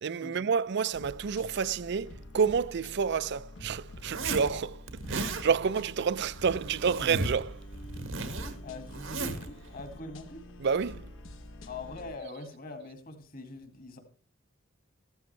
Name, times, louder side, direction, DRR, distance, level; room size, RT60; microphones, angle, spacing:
voice 1, 0.0-7.6 10.6-11.1, right 6 dB, 60° right, 0.5 m, -29 dB
sound 1, 0.9-12.2, left 1 dB, 75° left, 1.1 m, -47 dB
Zipper (clothing), 4.0-4.5 4.9-5.4 6.3-7.4 7.7-9.5, right 2 dB, 90° right, 1.7 m, -35 dB
voice 2, 8.6-10.4 11.6-14.0, left 3 dB, 45° left, 2.0 m, -43 dB
14.5 x 12.5 x 3.3 m
head